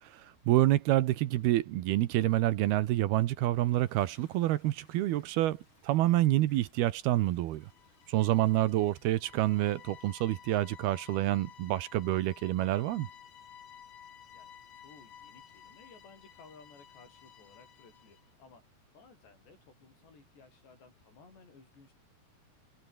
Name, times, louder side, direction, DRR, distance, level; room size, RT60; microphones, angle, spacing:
voice 1, 0.0-7.7 8.1-13.1, right 15 dB, 75° right, 2.8 m, -28 dB
Toilet flush, 3.4-10.3, left 2 dB, 30° left, 8.7 m, -67 dB
sound 1, 7.5-18.3, left 9 dB, 65° left, 4.2 m, -54 dB
voice 2, 14.3-21.9, left 4 dB, 80° left, 10.0 m, -58 dB
omnidirectional pair, 4.9 m